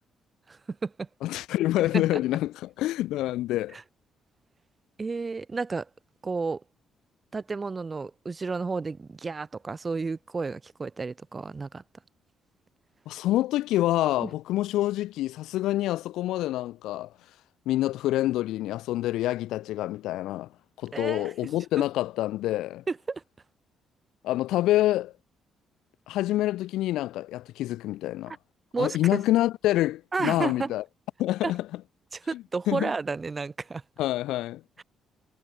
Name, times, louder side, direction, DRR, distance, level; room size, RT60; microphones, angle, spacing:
voice 1, 0.5-1.1 1.9-2.0 3.7-3.8 5.0-5.9 6.2-6.6 7.3-11.8 14.2-14.3 20.9-21.3 22.9-23.2 28.7-29.2 30.1-30.7 31.4-31.5 32.1-33.8 34.8-34.9, right 4 dB, 30° right, 7.8 m, -31 dB
voice 2, 1.2-3.8 13.1-17.1 17.7-20.5 20.8-22.8 24.2-25.1 26.1-28.4 28.8-30.8 31.2-31.7 32.3-32.9 34.0-34.6, left 15 dB, 90° left, 2.0 m, -27 dB
cardioid pair, 90°, 0 cm